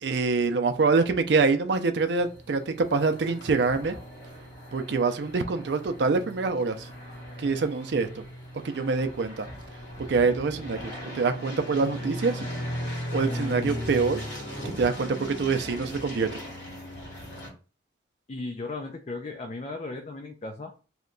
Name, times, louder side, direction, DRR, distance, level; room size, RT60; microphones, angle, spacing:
voice 1, 0.0-4.0 4.7-6.9 7.4-8.2 8.6-9.5 10.1-12.5 13.1-14.2 14.8-16.4, right 4 dB, 65° right, 0.4 m, -25 dB
sound 1, 2.2-17.5, equal, 70° left, 1.5 m, -38 dB
voice 2, 18.3-20.7, left 3 dB, 35° left, 0.4 m, -36 dB
2.8 x 2.2 x 3.8 m
head